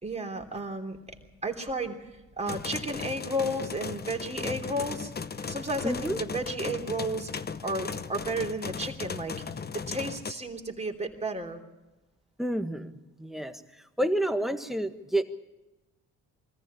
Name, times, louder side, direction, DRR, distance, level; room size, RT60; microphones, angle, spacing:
voice 1, 0.0-1.0 1.4-2.0 2.4-5.1 5.5-7.3 7.6-9.4 9.7-11.6, right 1 dB, 15° right, 2 dB, 3.1 m, -32 dB
sound 1, 2.5-10.3, left 5 dB, 25° left, 0.9 m, -37 dB
voice 2, 5.8-6.2 12.4-12.9 13.2-13.6 14.0-15.2, right 1 dB, ahead, 7 dB, 1.6 m, -29 dB
22.0 x 14.5 x 8.7 m, 1.1 s
supercardioid pair, 70°, 37 cm